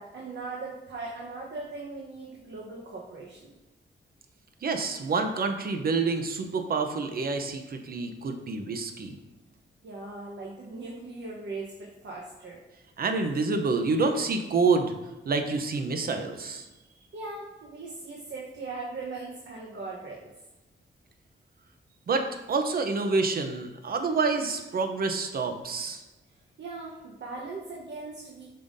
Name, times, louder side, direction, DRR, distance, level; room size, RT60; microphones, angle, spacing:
voice 1, 0.0-3.5 9.8-12.6 17.1-20.3 26.6-28.5, right 3 dB, 65° right, -3 dB, 1.0 m, -39 dB
voice 2, 4.6-9.2 13.0-14.9 15.2-16.7 22.1-26.0, right 4 dB, 50° right, 6 dB, 0.7 m, -27 dB
7.2 x 5.6 x 2.6 m, 1.1 s
wide cardioid pair, 150°, 20 cm